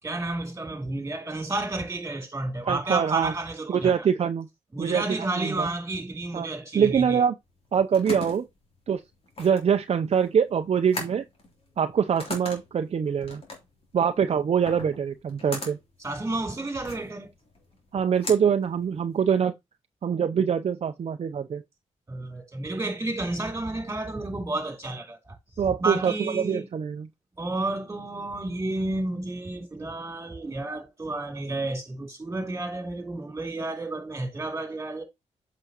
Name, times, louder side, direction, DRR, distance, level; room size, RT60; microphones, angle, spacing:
voice 1, 0.0-4.1 4.7-7.2 16.0-17.3 22.1-25.4 25.6-26.7 27.4-35.0, right 2 dB, 20° right, 3.2 m, -31 dB
voice 2, 2.7-3.3 3.7-4.5 4.8-5.7 6.3-6.5 6.7-7.3 7.7-8.5 8.9-9.0 9.4-11.2 11.8-13.4 13.9-15.8 17.9-19.5 20.0-21.6 25.6-27.1, right 7 dB, 55° right, 0.6 m, -24 dB
sound 1, 7.5-19.4, left 2 dB, 50° left, 3.2 m, -40 dB
7.9 x 6.0 x 2.9 m
cardioid pair, 85°, 13 cm